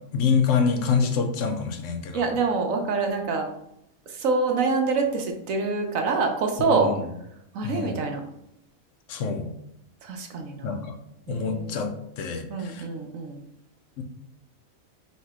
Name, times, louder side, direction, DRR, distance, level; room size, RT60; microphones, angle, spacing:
voice 1, 0.1-2.3 6.7-7.1 7.6-8.0 9.1-9.5 10.6-10.8 11.3-11.9 12.2-12.8 14.0-14.1, left 5 dB, 70° left, 6 dB, 0.9 m, -26 dB
voice 2, 2.1-3.5 4.1-6.9 7.5-8.2 10.0-10.8 11.3-11.8 12.5-13.4, right 4 dB, 75° right, 4 dB, 1.1 m, -26 dB
3.2 x 2.9 x 4.6 m, 0.80 s
omnidirectional pair, 1.5 m